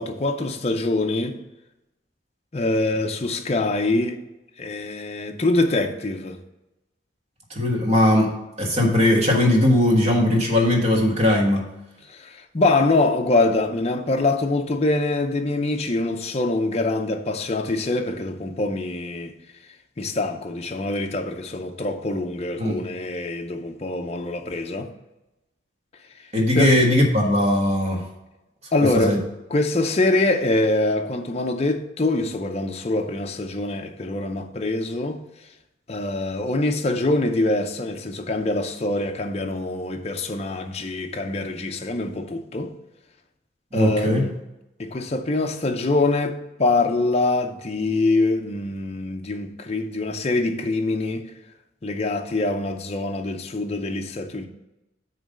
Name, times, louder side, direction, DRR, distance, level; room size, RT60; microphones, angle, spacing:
voice 1, 0.0-1.4 2.5-4.2 4.6-6.4 12.1-19.3 20.0-24.9 26.5-26.8 28.7-29.2 29.5-35.2 35.9-42.7 43.7-44.4 44.8-51.3 51.8-54.5, left 2 dB, 35° left, 0.5 m, -24 dB
voice 2, 7.5-8.3 8.6-11.6 22.6-22.8 26.3-28.0 28.9-29.2 43.7-44.2, left 1 dB, 35° right, 1.5 m, -19 dB
8.9 x 3.1 x 6.4 m
head